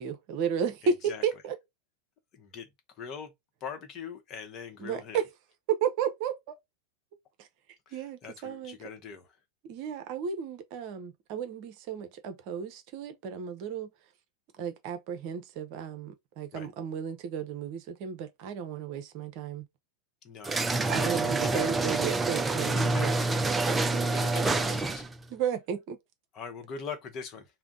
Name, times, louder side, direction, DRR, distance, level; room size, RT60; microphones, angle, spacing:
voice 1, 0.0-1.6 4.8-5.2 5.7-6.6 7.4-7.5 7.9-8.8 9.6-13.9 14.6-19.6 20.9-23.2 23.9-24.0 25.3-26.0, right 7 dB, 45° right, 0.7 m, -33 dB
voice 2, 0.8-1.2 2.3-2.7 3.0-3.3 3.6-5.2 7.9-9.3 16.5-16.7 20.2-20.7 21.0-21.7 22.7-23.3 24.0-25.1 26.3-27.4, left 6 dB, 30° left, 0.9 m, -42 dB
sound 1, 20.4-25.2, right 3 dB, 10° right, 0.4 m, -27 dB
3.5 x 2.1 x 3.8 m
figure-of-eight pair, 90°, 0 cm